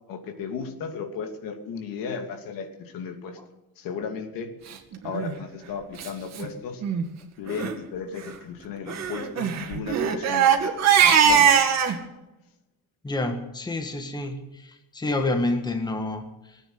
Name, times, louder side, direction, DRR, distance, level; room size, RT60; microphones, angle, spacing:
voice 1, 0.1-3.4 3.8-4.5 5.0-6.8 7.4-10.8 11.2-11.5, left 6 dB, 75° left, 5 dB, 2.7 m, -35 dB
Crying sobbing, 5.1-5.3 6.0-6.1 6.4-6.5 6.8-7.0 7.5-7.7 8.9-12.0, right 8 dB, 50° right, 2.4 m, -20 dB
voice 2, 13.0-16.6, left 2 dB, 10° left, 5 dB, 1.5 m, -29 dB
18.5 x 9.2 x 8.0 m, 0.98 s
cardioid pair, 150°, 35 cm